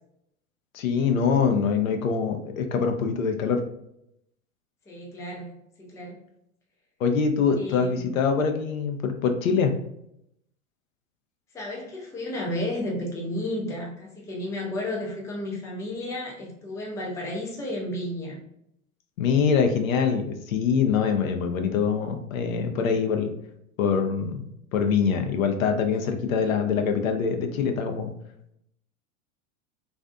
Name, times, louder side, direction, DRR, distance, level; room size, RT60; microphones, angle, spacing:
voice 1, 0.7-3.6 7.0-9.7 19.2-23.3 23.8-24.4 24.7-28.1, left 6 dB, 75° left, 5 dB, 0.5 m, -24 dB
voice 2, 4.9-6.2 7.5-8.1 11.5-18.4, left 1 dB, 10° left, -2 dB, 0.4 m, -32 dB
2.5 x 2.4 x 2.2 m, 0.76 s
hypercardioid pair, 90°, 41 cm